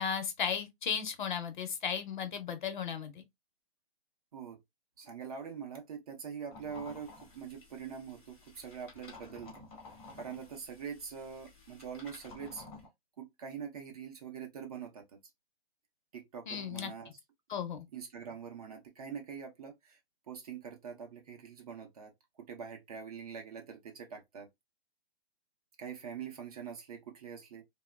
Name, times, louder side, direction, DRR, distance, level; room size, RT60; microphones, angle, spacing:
voice 1, 0.0-3.2 16.5-16.9 17.5-17.9, left 7 dB, 50° left, 0.6 m, -35 dB
voice 2, 5.0-9.6 10.2-12.6 13.2-15.2 16.1-17.1 17.9-20.0 20.3-22.1 22.4-24.5 25.8-27.6, right 7 dB, 35° right, 0.6 m, -44 dB
sound 1, 6.5-12.9, left 3 dB, ahead, 0.3 m, -53 dB
3.2 x 2.1 x 2.2 m
hypercardioid pair, 155°, 32 cm